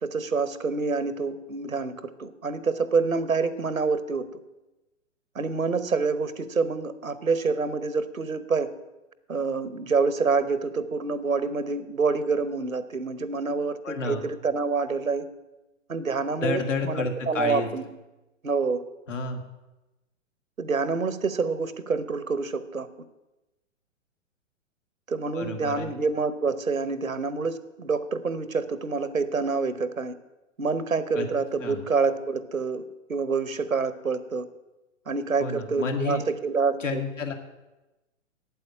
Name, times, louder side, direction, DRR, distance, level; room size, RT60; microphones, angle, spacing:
voice 1, 0.0-4.3 5.3-8.7 9.3-15.3 15.9-17.9 18.4-18.8 20.6-22.9 25.1-30.1 30.6-32.8 33.1-34.4 35.1-37.0, right 4 dB, 90° right, 14 dB, 1.0 m, -27 dB
voice 2, 13.8-14.2 16.4-17.7 19.1-19.4 25.3-25.9 31.1-31.3 31.6-31.8 35.4-36.2 36.8-37.3, left 4 dB, 65° left, 5 dB, 2.0 m, -30 dB
8.4 x 8.3 x 8.5 m, 1.0 s
figure-of-eight pair, 120°, 40 cm